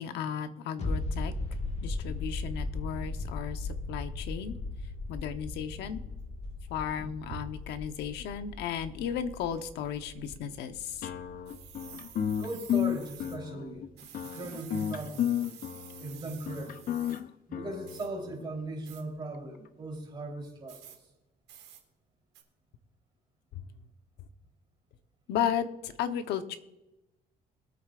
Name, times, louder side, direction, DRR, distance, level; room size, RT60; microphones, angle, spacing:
voice 1, 0.0-1.3 1.8-4.5 5.1-6.0 6.7-11.0 23.5-23.6 25.3-26.6, left 8 dB, 80° left, 9 dB, 1.0 m, -34 dB
sound 1, 0.8-12.1 12.4-12.5, left 2 dB, 40° left, 1.8 m, -37 dB
sound 2, 3.9-4.0 4.7-4.8 5.4-5.5 5.7-8.2 8.5-8.7 9.0-9.6 10.0-10.8 11.5-13.4 14.0-17.2 17.9-18.1 18.8-19.0 20.7-21.0 21.5-21.8 22.3-22.4, right 8 dB, 75° right, 2.4 m, -50 dB
sound 3, 11.0-18.4, left 10 dB, 55° left, 0.8 m, -33 dB
voice 2, 12.4-15.6 16.0-17.0 17.5-20.9, right 2 dB, 25° right, 0 dB, 3.7 m, -39 dB
22.0 x 8.5 x 2.5 m, 0.96 s
cardioid pair, 110°, 17 cm